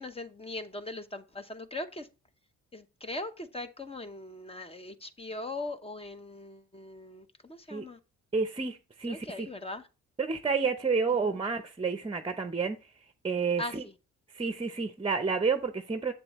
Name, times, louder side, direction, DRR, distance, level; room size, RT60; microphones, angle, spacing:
voice 1, 0.0-2.1 2.7-8.0 9.1-9.8 11.2-11.4 13.6-13.7, left 2 dB, 20° left, 0.9 m, -40 dB
voice 2, 8.3-9.5 10.2-13.8 14.3-16.1, right 5 dB, 20° right, 0.7 m, -30 dB
7.5 x 7.4 x 3.1 m
cardioid pair, 90°, 30 cm